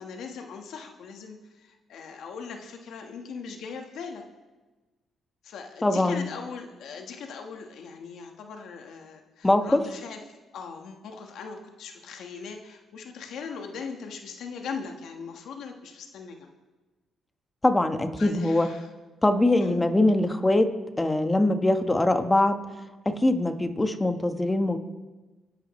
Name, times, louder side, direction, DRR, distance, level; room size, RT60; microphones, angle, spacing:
voice 1, 0.0-4.2 5.4-16.5 18.2-18.9 19.6-19.8, left 5 dB, 75° left, 4 dB, 1.4 m, -40 dB
voice 2, 5.8-6.3 9.4-9.8 17.6-18.7 19.2-22.6 23.0-24.8, left 1 dB, 15° left, 7 dB, 1.2 m, -22 dB
26.0 x 11.0 x 3.2 m, 1.2 s
cardioid pair, 90°, 0 cm